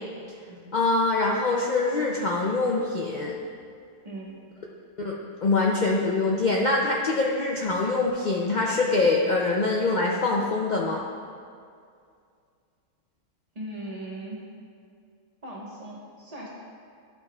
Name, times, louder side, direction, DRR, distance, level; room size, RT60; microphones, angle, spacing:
voice 1, 0.7-3.4 5.0-5.2 5.4-11.0, left 3 dB, 75° left, -2 dB, 0.4 m, -24 dB
voice 2, 4.0-4.4 13.5-14.5 15.4-16.5, right 1 dB, 30° right, -5 dB, 1.2 m, -39 dB
11.5 x 5.5 x 2.3 m, 2.3 s
omnidirectional pair, 1.5 m